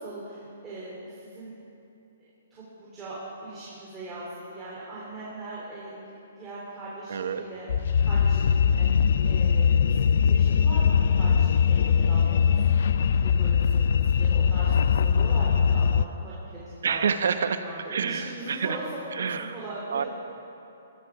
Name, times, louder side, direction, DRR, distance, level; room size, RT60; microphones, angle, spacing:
voice 1, 0.0-1.5 2.2-5.9 6.4-7.7 8.0-17.3 17.6-20.1, right 2 dB, 15° right, -9 dB, 3.3 m, -40 dB
voice 2, 7.1-7.5 16.8-17.6 17.9-18.8 19.1-19.6 19.9-20.0, right 6 dB, 75° right, 9 dB, 1.0 m, -27 dB
sound 1, 7.7-16.1, left 7 dB, 65° left, 0.4 m, -21 dB
20.5 x 13.0 x 4.9 m, 2.8 s
hypercardioid pair, 155°, 0 cm